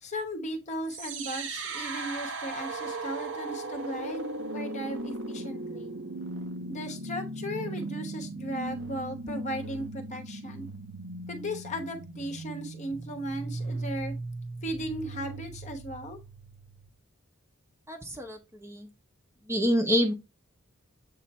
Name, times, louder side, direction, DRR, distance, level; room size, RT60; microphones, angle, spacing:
voice 1, 0.0-4.3 4.5-5.9 6.7-10.7 11.3-14.1 14.6-16.2, equal, 30° left, 1.0 m, -36 dB
sound 1, 0.9-16.9, right 2 dB, 60° right, 0.9 m, -37 dB
voice 2, 17.9-18.9 19.5-20.1, equal, 10° right, 0.8 m, -27 dB
7.7 x 3.2 x 4.2 m
head